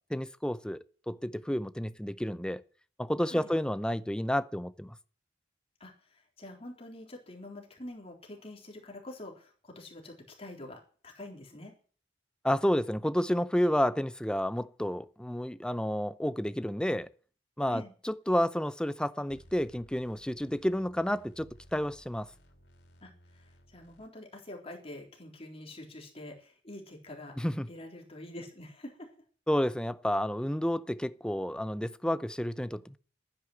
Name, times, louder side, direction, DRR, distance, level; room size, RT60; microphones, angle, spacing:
voice 1, 0.1-2.6 3.0-5.0 12.4-17.1 17.6-22.3 27.4-27.7 29.5-33.0, equal, 5° left, 0.5 m, -30 dB
voice 2, 5.8-11.7 17.7-17.9 23.0-27.3 27.7-29.1, left 1 dB, 35° left, 3.9 m, -46 dB
sound 1, 19.3-24.1, equal, 80° left, 3.8 m, -59 dB
11.5 x 10.0 x 7.9 m
head